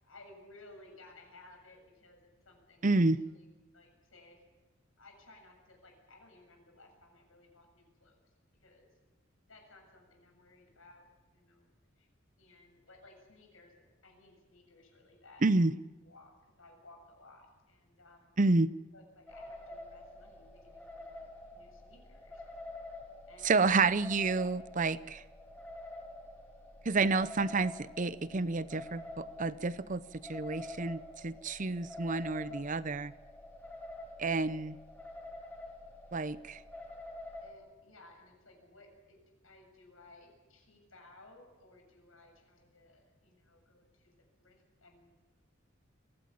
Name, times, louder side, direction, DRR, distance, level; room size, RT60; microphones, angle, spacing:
voice 1, 0.0-3.5 3.7-4.4 5.0-8.2 8.6-8.9 9.5-11.1 11.3-11.7 12.0-12.1 12.4-15.5 16.0-18.3 18.9-21.1 21.5-22.4 23.3-23.8 37.4-39.2 39.4-45.1, left 2 dB, 85° left, 3 dB, 7.4 m, -58 dB
voice 2, 2.8-3.2 15.4-15.7 18.4-18.7 23.4-25.2 26.8-33.1 34.2-34.8 36.1-36.6, right 3 dB, 40° right, 16 dB, 0.7 m, -29 dB
sound 1, 19.3-37.5, left 1 dB, 10° left, 3.7 m, -48 dB
23.0 x 16.5 x 8.6 m, 1.2 s
head